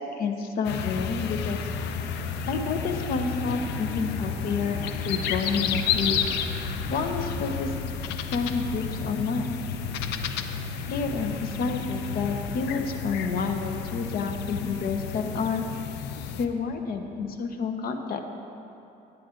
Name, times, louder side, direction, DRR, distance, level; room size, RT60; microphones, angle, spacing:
voice 1, 0.0-1.6 2.5-6.2 6.9-7.7 8.3-9.5 10.9-15.6 16.4-18.2, left 4 dB, 60° left, 5 dB, 0.9 m, -29 dB
sound 1, 0.6-16.5, left 8 dB, 85° left, 0.5 m, -32 dB
sound 2, 1.0-17.3, equal, 5° right, 1.9 m, -41 dB
10.0 x 9.4 x 3.8 m, 2.9 s
cardioid pair, 110°, 17 cm